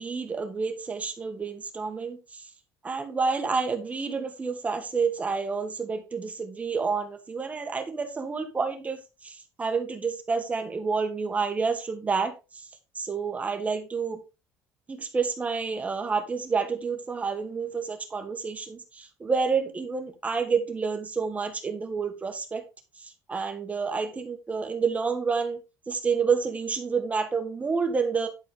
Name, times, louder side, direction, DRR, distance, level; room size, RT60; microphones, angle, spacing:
voice 1, 0.0-2.4 2.8-9.0 9.2-12.3 13.0-14.2 14.9-22.6 23.3-25.6 25.9-28.3, right 5 dB, 20° right, 1.7 m, -29 dB
11.5 x 4.5 x 3.8 m
cardioid pair, 130°, 7 cm